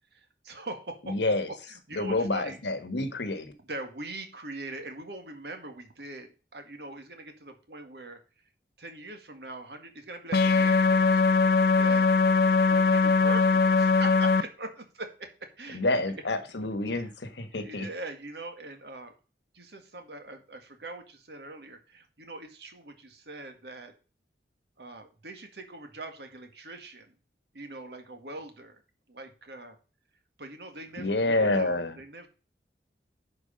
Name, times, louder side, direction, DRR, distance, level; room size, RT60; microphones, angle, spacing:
voice 1, 0.1-2.6 3.6-8.2 8.8-11.2 11.8-12.1 12.4-15.8 16.9-17.0 17.5-19.1 19.5-23.9 24.8-27.2 27.5-28.8 29.1-29.8 30.4-32.3, right 2 dB, 70° right, 1.9 m, -42 dB
voice 2, 1.1-1.5 1.9-3.5 15.7-17.9 31.0-31.9, left 2 dB, 85° left, 1.3 m, -28 dB
sound 1, 10.3-14.4, left 4 dB, 60° left, 0.6 m, -21 dB
10.5 x 4.9 x 5.1 m
head